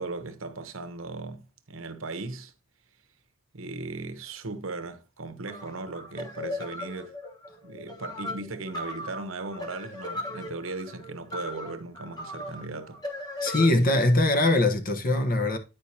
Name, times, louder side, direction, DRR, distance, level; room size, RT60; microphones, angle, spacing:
voice 1, 0.0-2.5 3.5-7.2 7.6-13.0, right 3 dB, 80° right, 1.0 m, -37 dB
sound 1, 5.5-13.7, left 1 dB, 20° left, 1.2 m, -37 dB
voice 2, 13.4-15.6, left 2 dB, 45° left, 1.1 m, -22 dB
10.0 x 5.1 x 2.8 m
head